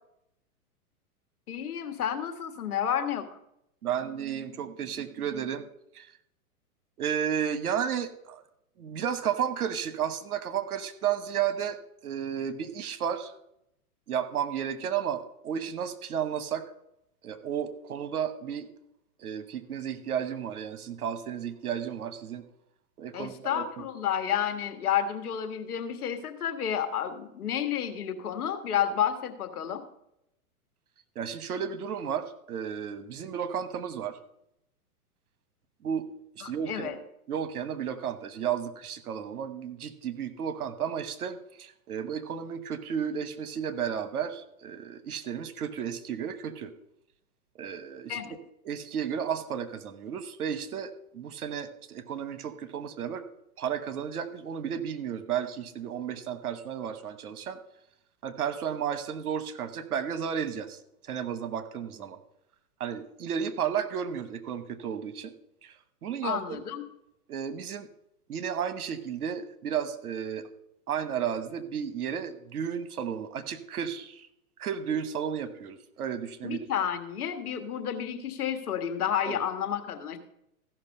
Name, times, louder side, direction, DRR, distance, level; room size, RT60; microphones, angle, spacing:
voice 1, 1.5-3.3 23.1-29.8 36.4-37.0 48.1-48.3 66.2-66.8 76.4-80.2, left 9 dB, 75° left, 8 dB, 1.6 m, -30 dB
voice 2, 3.8-5.6 5.9-6.1 7.0-8.4 8.8-13.3 14.1-16.6 17.2-18.7 19.2-22.4 23.0-23.8 31.1-34.2 35.8-36.1 36.3-37.0 37.3-46.7 47.6-48.4 48.6-53.2 53.6-57.6 58.2-62.2 62.8-65.3 65.6-65.7 66.0-66.6 67.3-67.9 68.3-70.5 70.9-74.3 74.6-76.7 79.3-79.4, right 8 dB, 75° right, 12 dB, 1.2 m, -33 dB
14.5 x 6.0 x 5.3 m, 0.80 s
hypercardioid pair, 120°, 45 cm